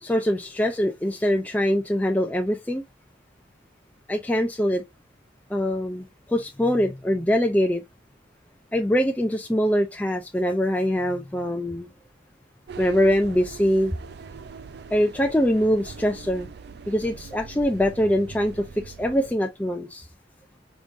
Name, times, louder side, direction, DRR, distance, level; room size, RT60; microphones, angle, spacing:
voice 1, 0.0-2.8 4.1-4.8 5.5-7.8 8.7-11.9 12.8-13.9 14.9-16.5 16.9-20.1, equal, 10° left, 0.4 m, -23 dB
sound 1, 12.7-19.3, right 5 dB, 60° right, 0.4 m, -41 dB
5.0 x 3.7 x 2.5 m
head